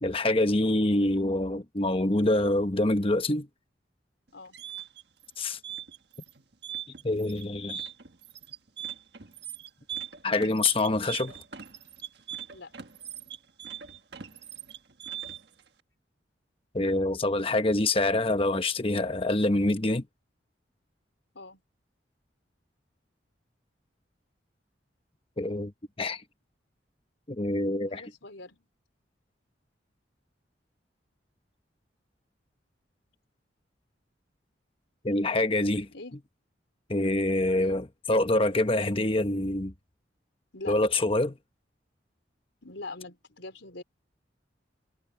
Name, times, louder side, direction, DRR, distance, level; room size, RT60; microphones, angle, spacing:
voice 1, 0.0-3.5 5.4-5.6 7.0-7.9 10.2-11.4 16.7-20.0 25.4-25.7 26.0-26.2 27.3-28.0 35.0-35.9 36.9-39.7 40.7-41.4, left 2 dB, 30° left, 1.1 m, -26 dB
sound 1, 4.3-15.6, right 9 dB, 65° right, 1.5 m, -41 dB
voice 2, 27.9-28.7 35.9-36.2 37.6-37.8 40.5-40.8 42.6-43.8, left 2 dB, 85° left, 4.3 m, -43 dB
head